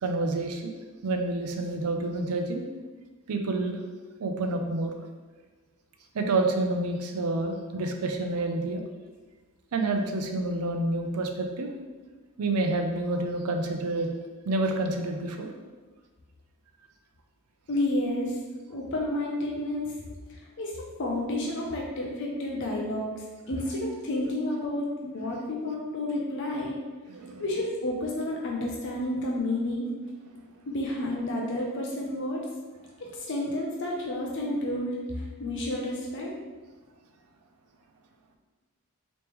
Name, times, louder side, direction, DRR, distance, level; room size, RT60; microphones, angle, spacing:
voice 1, 0.0-2.6 3.3-3.8 4.2-4.9 6.1-8.8 9.7-11.7 12.4-14.1 14.4-15.5 27.1-27.4, right 2 dB, 90° right, 4 dB, 0.5 m, -28 dB
voice 2, 17.7-18.4 18.7-19.9 20.3-26.8 27.4-29.9 30.7-32.4 33.0-36.3, left 1 dB, 55° left, -2 dB, 0.5 m, -30 dB
3.4 x 3.0 x 3.0 m, 1.3 s
head